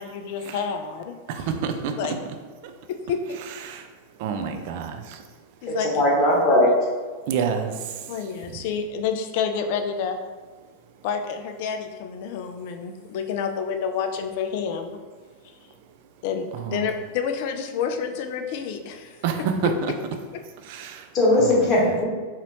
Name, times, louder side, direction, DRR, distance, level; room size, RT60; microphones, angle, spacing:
voice 1, 0.0-1.5 2.0-2.1 2.9-3.2 5.6-6.0 8.1-10.2 11.0-15.0 16.2-19.2 19.6-19.7, left 6 dB, 50° left, 7 dB, 0.3 m, -29 dB
voice 2, 1.3-1.9 3.6-3.9 4.2-5.2 7.3-7.7 16.7-16.8 19.2-19.7 20.7-21.1 21.4-21.5, right 7 dB, 50° right, 6 dB, 0.3 m, -27 dB
voice 3, 5.7-6.7 21.1-22.0, left 1 dB, 30° left, -3 dB, 1.0 m, -19 dB
4.0 x 2.8 x 2.6 m, 1.4 s
figure-of-eight pair, 90°, 0 cm